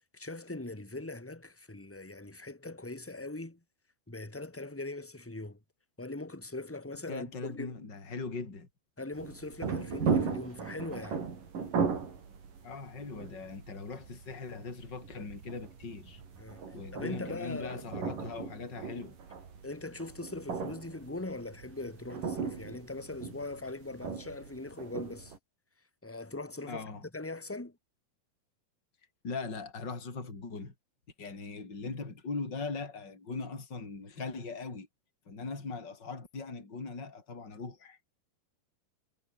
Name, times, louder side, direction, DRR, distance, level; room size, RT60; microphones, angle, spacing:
voice 1, 0.1-3.6 4.1-5.6 6.0-7.8 9.0-11.2 16.4-16.6 16.9-17.8 19.6-25.3 26.0-26.8 27.1-27.8, left 2 dB, 5° left, 1.7 m, -41 dB
voice 2, 7.1-8.7 12.6-16.2 16.7-19.2 26.7-27.0 29.2-30.7 31.2-34.9 35.3-38.0, left 4 dB, 25° left, 5.4 m, -40 dB
sound 1, 9.1-25.4, right 6 dB, 55° right, 5.8 m, -37 dB
omnidirectional pair, 4.7 m